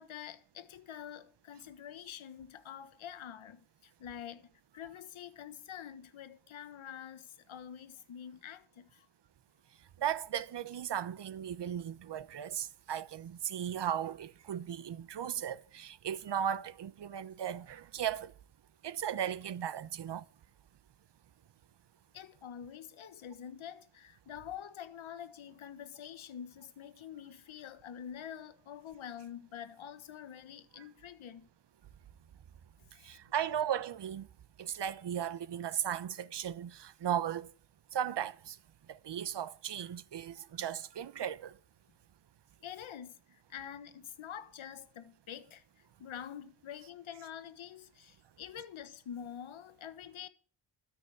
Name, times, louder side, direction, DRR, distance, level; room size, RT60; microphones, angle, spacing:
voice 1, 0.0-9.1 22.1-31.5 33.0-33.2 42.6-50.3, left 9 dB, 75° left, 1.4 m, -47 dB
voice 2, 10.0-18.3 18.8-20.2 33.0-34.3 34.6-37.5 37.9-38.6 38.9-41.6, right 9 dB, 60° right, 1.0 m, -36 dB
13.0 x 6.1 x 9.3 m
cardioid pair, 100°, 47 cm